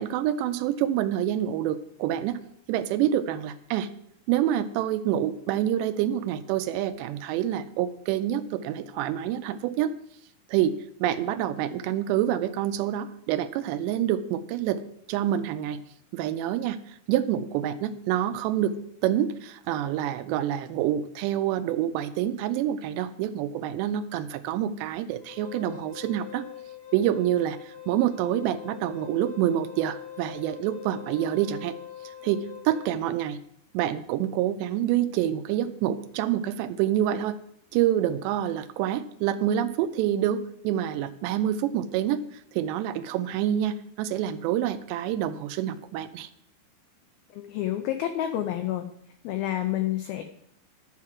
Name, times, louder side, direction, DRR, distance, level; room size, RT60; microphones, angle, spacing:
voice 1, 0.0-2.4 2.7-3.9 4.3-9.9 10.5-10.7 11.0-14.8 15.1-15.8 16.1-16.8 17.1-26.4 26.9-31.8 32.2-33.4 33.7-37.4 37.7-46.3, right 11 dB, 85° right, 11 dB, 2.7 m, -27 dB
Wind instrument woodwind instrument, 25.2-33.1, left 10 dB, 60° left, 1.5 m, -43 dB
voice 2, 47.3-48.9 49.2-50.2, left 12 dB, 90° left, 7 dB, 2.1 m, -29 dB
11.5 x 4.8 x 7.3 m, 0.70 s
omnidirectional pair, 5.1 m